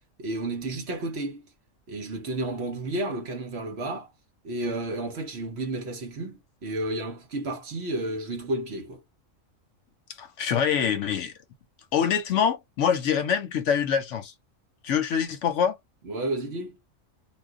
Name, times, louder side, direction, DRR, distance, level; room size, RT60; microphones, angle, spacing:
voice 1, 0.2-1.4 1.9-4.1 4.4-9.0 16.0-16.8, right 2 dB, 55° right, 1.0 m, -31 dB
voice 2, 10.2-11.3 11.9-14.3 14.8-15.8, left 7 dB, 70° left, 0.9 m, -25 dB
2.4 x 2.4 x 3.6 m
omnidirectional pair, 1.4 m